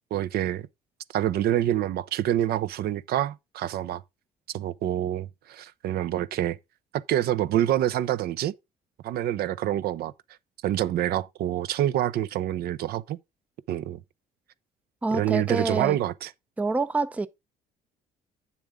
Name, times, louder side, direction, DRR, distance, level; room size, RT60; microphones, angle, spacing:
voice 1, 0.1-0.7 1.1-4.0 4.5-6.6 6.9-8.5 9.0-10.1 10.6-13.2 13.7-14.0 15.1-16.3, right 12 dB, 65° right, 0.6 m, -26 dB
voice 2, 15.0-16.0 16.6-17.3, right 3 dB, 10° right, 0.4 m, -26 dB
8.4 x 7.1 x 3.6 m
cardioid pair, 110°, 17 cm